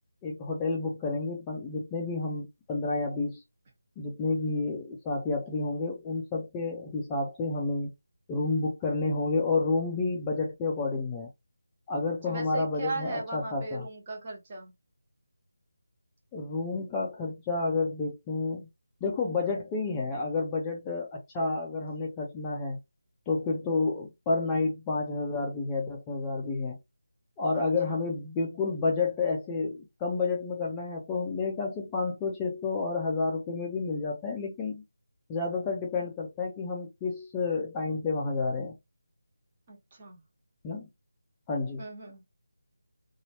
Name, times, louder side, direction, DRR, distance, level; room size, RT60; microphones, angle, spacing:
voice 1, 0.2-3.4 4.0-7.9 8.3-11.3 11.9-13.8 16.3-18.7 19.0-22.8 23.3-26.8 27.4-34.8 35.3-38.7 40.6-40.9 41.5-41.8, left 3 dB, 15° left, 0.6 m, -30 dB
voice 2, 12.2-14.7 27.5-28.0 39.7-40.2 41.8-42.2, right 3 dB, 30° right, 1.2 m, -38 dB
2.9 x 2.6 x 2.8 m
figure-of-eight pair, 160°, 0 cm